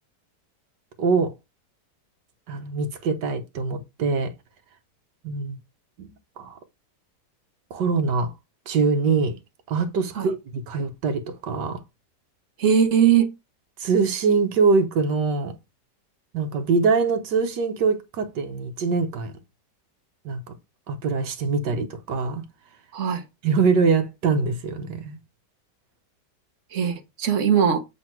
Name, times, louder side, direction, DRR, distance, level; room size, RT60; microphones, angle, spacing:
voice 1, 1.0-1.3 2.5-4.3 5.2-5.6 6.0-6.5 7.7-8.3 8.7-9.4 9.7-11.8 13.8-15.5 16.3-19.3 20.3-20.4 20.9-22.4 23.4-25.2, right 4 dB, 80° right, 1.7 m, -23 dB
voice 2, 12.6-13.3 22.9-23.2 26.7-27.8, right 8 dB, 50° right, 1.5 m, -20 dB
7.8 x 3.6 x 4.5 m
omnidirectional pair, 1.8 m